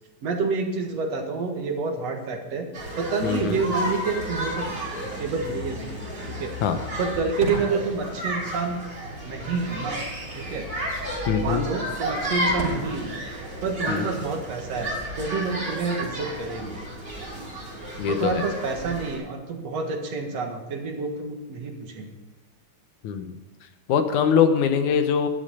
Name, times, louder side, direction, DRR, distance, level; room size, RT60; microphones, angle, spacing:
voice 1, 0.2-2.7 3.0-4.7 5.2-6.0 6.3-6.6 7.0-8.8 9.2-10.0 10.3-10.7 11.4-13.1 13.6-14.9 15.2-16.7 18.1-22.2, right 4 dB, 60° right, 3 dB, 2.6 m, -28 dB
sound 1, 2.7-19.2, equal, 30° right, 5.8 m, -32 dB
voice 2, 3.2-3.6 6.6-6.8 11.3-11.6 13.9-14.1 18.0-18.4 23.0-23.4 23.9-25.3, left 7 dB, 80° left, 8 dB, 2.5 m, -22 dB
Fireworks, 7.0-16.9, right 2 dB, 80° right, 4.6 m, -41 dB
12.0 x 11.0 x 5.6 m, 1.2 s
omnidirectional pair, 3.4 m